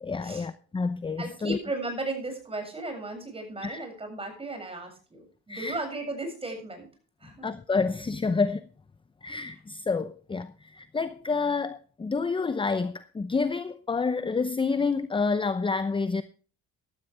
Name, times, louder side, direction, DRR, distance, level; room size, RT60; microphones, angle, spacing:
voice 1, 0.0-1.6 3.6-3.8 5.5-5.8 7.4-8.7 9.2-16.2, left 4 dB, 15° left, 0.7 m, -28 dB
voice 2, 1.2-6.9 7.2-7.5, right 2 dB, 20° right, 7.4 m, -35 dB
15.5 x 12.5 x 3.5 m
cardioid pair, 100°, 31 cm